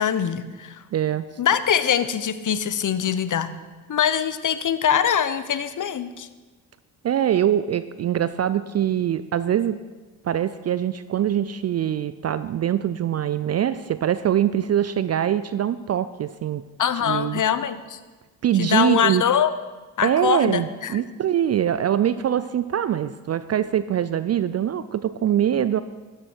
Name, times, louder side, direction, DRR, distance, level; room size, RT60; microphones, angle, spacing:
voice 1, 0.0-0.8 1.4-3.5 3.9-6.3 16.8-18.0 18.5-19.5 20.0-20.9, left 8 dB, 40° left, 13 dB, 0.9 m, -23 dB
voice 2, 0.9-1.3 7.0-9.8 10.2-16.6 17.0-17.4 18.4-19.2 20.0-25.8, right 10 dB, 35° right, 14 dB, 0.4 m, -23 dB
13.0 x 10.0 x 4.5 m, 1.3 s
hypercardioid pair, 45°, 49 cm